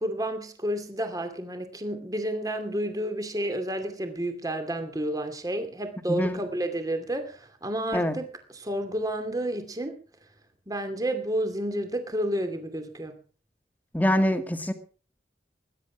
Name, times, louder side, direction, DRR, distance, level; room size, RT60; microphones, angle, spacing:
voice 1, 0.0-8.3 8.5-9.9 10.7-13.2, right 1 dB, 20° right, 8 dB, 2.5 m, -30 dB
voice 2, 6.1-6.4 7.9-8.2 13.9-14.7, equal, 10° left, 8 dB, 1.9 m, -24 dB
20.5 x 10.5 x 6.1 m, 0.41 s
head